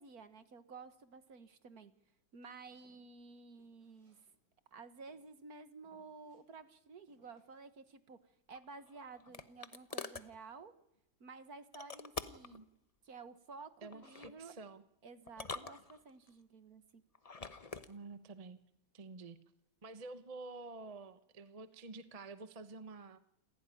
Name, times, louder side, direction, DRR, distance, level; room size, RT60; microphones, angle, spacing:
voice 1, 0.0-1.9 2.3-4.2 4.7-8.2 8.5-10.7 11.2-12.6 13.0-14.5 15.0-17.0, right 4 dB, 50° right, 11 dB, 1.9 m, -53 dB
Walk footsteps, 2.4-4.7 5.1-5.4 5.8-6.4 7.1-7.6, equal, 65° right, 8.1 m, -73 dB
sound 1, 8.5-10.3 11.7-12.6 13.9-14.4 15.3-16.3 17.1-17.9, left 4 dB, 30° left, 0.7 m, -46 dB
voice 2, 13.8-14.8 17.9-18.6 18.9-19.4 19.8-23.2, right 3 dB, 25° right, 11 dB, 0.8 m, -49 dB
28.0 x 15.5 x 10.0 m, 0.84 s
omnidirectional pair, 2.1 m